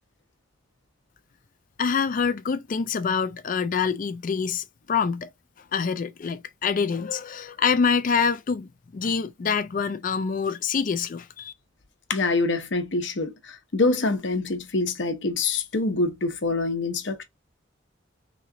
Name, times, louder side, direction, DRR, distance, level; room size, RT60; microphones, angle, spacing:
voice 1, 1.8-5.3 5.7-11.5, left 6 dB, 45° left, 0.4 m, -26 dB
voice 2, 12.1-17.2, left 3 dB, 65° left, 0.8 m, -25 dB
3.7 x 3.1 x 2.6 m
head